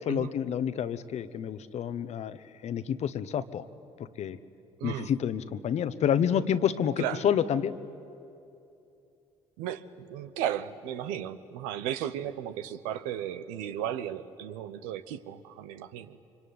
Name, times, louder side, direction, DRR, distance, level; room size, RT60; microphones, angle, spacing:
voice 1, 0.0-3.7 4.0-4.4 4.8-7.7, left 8 dB, 60° left, 13 dB, 1.1 m, -29 dB
voice 2, 4.8-5.1 7.0-7.2 9.6-16.2, right 10 dB, 85° right, 12 dB, 1.0 m, -35 dB
25.0 x 23.5 x 9.5 m, 2.7 s
supercardioid pair, 60°, 13 cm